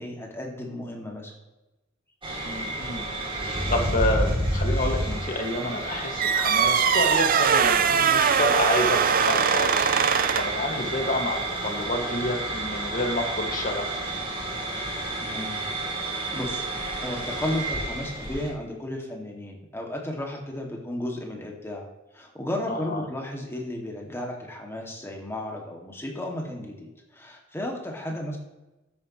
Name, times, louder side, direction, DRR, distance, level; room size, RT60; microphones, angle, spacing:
voice 1, 0.0-1.3 15.2-15.6 16.0-21.9 22.1-28.4, left 1 dB, 10° left, 0 dB, 2.2 m, -34 dB
sound 1, 2.2-18.5, right 1 dB, 25° right, 2.8 m, -30 dB
voice 2, 2.4-3.1 3.4-13.9 22.7-23.0, left 1 dB, 45° left, 3 dB, 2.0 m, -29 dB
sound 2, 6.2-10.6, right 7 dB, 45° right, 0.6 m, -22 dB
12.5 x 9.7 x 3.1 m, 1.0 s
head